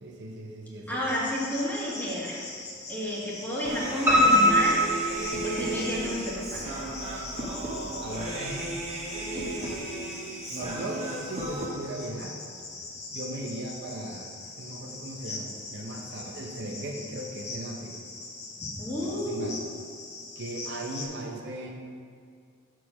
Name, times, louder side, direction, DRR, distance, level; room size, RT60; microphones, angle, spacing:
voice 1, 0.0-1.0 8.0-8.7 10.5-12.4 13.1-18.0 19.0-19.6 20.4-21.7, right 1 dB, 60° right, 1 dB, 0.7 m, -37 dB
voice 2, 0.9-2.4 2.9-4.8 5.4-6.6 7.1-7.3 9.3-9.4 18.7-19.5, equal, 10° left, -6 dB, 1.5 m, -31 dB
Cricket, 1.1-21.1, left 3 dB, 35° left, 0.9 m, -42 dB
Human voice, 3.6-11.7, right 1 dB, 35° right, 1.1 m, -35 dB
Piano, 4.1-6.0 6.4-7.3 7.6-7.7 8.2-8.3 8.5-8.6, equal, 10° right, 1.5 m, -22 dB
6.5 x 4.6 x 5.7 m, 2.2 s
head